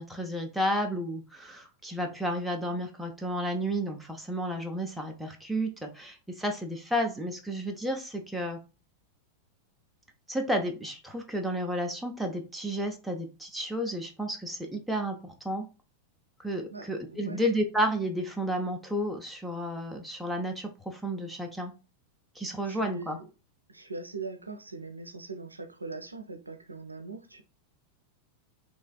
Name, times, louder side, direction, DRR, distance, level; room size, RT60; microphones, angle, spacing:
voice 1, 0.0-8.6 10.3-15.7 16.4-21.7 22.4-23.2, equal, 5° right, 0.5 m, -32 dB
voice 2, 16.7-17.4 22.7-23.3 23.7-27.4, right 3 dB, 80° right, 0.5 m, -41 dB
3.2 x 3.0 x 2.3 m
figure-of-eight pair, 90°, 0 cm